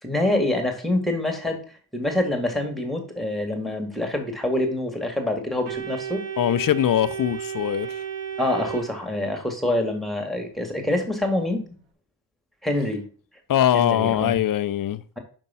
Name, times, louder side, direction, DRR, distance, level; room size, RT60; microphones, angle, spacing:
voice 1, 0.0-1.6 1.9-6.2 8.4-11.6 12.6-13.0 13.7-14.4, left 1 dB, ahead, 1.8 m, -26 dB
Organ, 5.6-9.6, right 8 dB, 75° right, 1.3 m, -33 dB
voice 2, 6.4-7.9 13.5-15.0, left 11 dB, 45° left, 0.5 m, -22 dB
5.4 x 5.2 x 5.5 m
cardioid pair, 90°, 47 cm